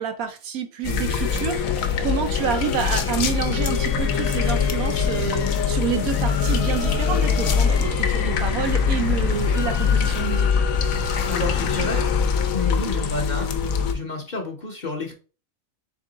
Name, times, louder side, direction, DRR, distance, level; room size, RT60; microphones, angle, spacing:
voice 1, 0.0-10.5, right 7 dB, 90° right, 1.2 m, -28 dB
sound 1, 0.8-13.9, left 6 dB, 80° left, 1.1 m, -22 dB
voice 2, 11.3-12.0 12.5-13.5 13.9-15.1, left 3 dB, 40° left, 0.8 m, -29 dB
3.7 x 3.6 x 3.8 m
omnidirectional pair, 1.4 m